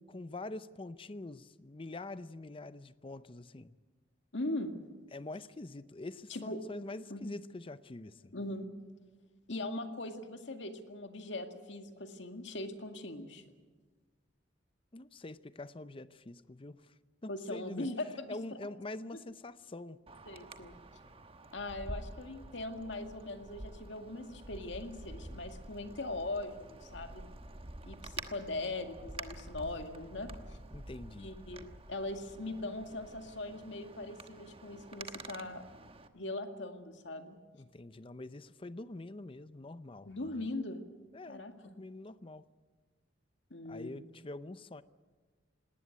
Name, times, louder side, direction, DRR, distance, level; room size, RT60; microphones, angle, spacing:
voice 1, 0.1-3.7 5.1-8.3 14.9-16.9 17.2-17.9 18.3-20.0 30.7-31.3 37.5-40.2 41.1-42.5 43.6-44.8, left 2 dB, 30° left, 0.6 m, -45 dB
voice 2, 4.3-4.8 6.3-6.6 7.1-7.3 8.3-8.7 9.5-13.4 17.3-18.6 20.3-20.8 21.5-27.2 27.8-30.6 31.2-35.6 36.1-37.4 40.0-40.8 41.3-41.7 43.5-43.9, left 2 dB, 70° left, 2.1 m, -40 dB
Wind, 20.1-36.1, right 2 dB, 30° right, 1.2 m, -48 dB
19.5 x 18.5 x 9.8 m
head